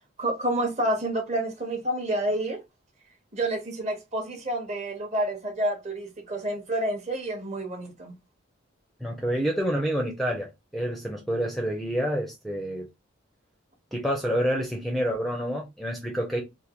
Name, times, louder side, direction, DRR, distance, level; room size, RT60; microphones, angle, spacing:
voice 1, 0.2-2.6 3.3-8.1, right 1 dB, 35° right, 0.9 m, -29 dB
voice 2, 9.0-12.9 13.9-16.4, equal, ahead, 0.5 m, -28 dB
3.4 x 2.2 x 2.9 m
head